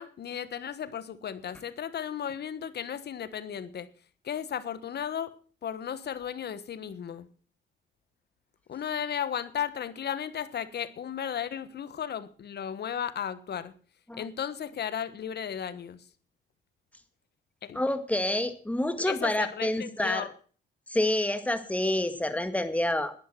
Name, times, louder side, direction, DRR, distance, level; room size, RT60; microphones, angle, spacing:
voice 1, 0.0-3.9 4.2-5.3 5.6-7.3 8.7-13.7 14.2-16.0 17.6-17.8 19.1-20.3, left 8 dB, 55° left, 1.4 m, -35 dB
voice 2, 17.7-20.3 20.9-23.1, left 1 dB, 5° left, 1.9 m, -28 dB
11.0 x 10.5 x 7.6 m
cardioid pair, 90°, 20 cm